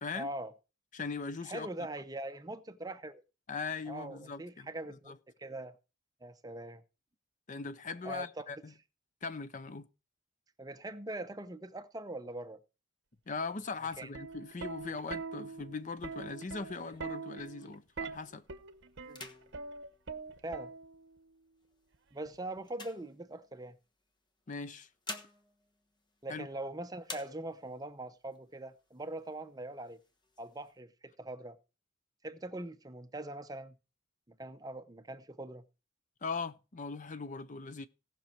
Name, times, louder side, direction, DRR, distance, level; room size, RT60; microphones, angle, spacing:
voice 1, 0.1-0.5 1.4-3.2 3.9-5.1 5.4-5.7 6.2-6.8 8.0-8.5 10.6-12.6 14.0-14.1 19.1-19.2 20.4-20.7 22.1-23.8 26.2-30.0 30.4-31.6 32.2-33.8 34.3-35.6, right 1 dB, 20° right, 0.7 m, -42 dB
voice 2, 0.9-1.7 3.5-4.7 5.1-5.2 7.5-8.7 9.2-9.9 13.3-18.4 24.5-24.9 26.3-26.5 36.2-37.9, left 4 dB, 40° left, 0.6 m, -40 dB
Plucked string instrument, 13.9-21.2 22.3-22.6, right 4 dB, 60° right, 0.9 m, -43 dB
sound 1, 15.8-18.0 18.4-18.7 19.0-20.9 21.6-23.8 24.6-26.7 27.0-27.9 28.3-28.4 28.7-29.4 29.8-30.7, left 2 dB, 20° left, 1.3 m, -50 dB
17.5 x 6.1 x 4.5 m
head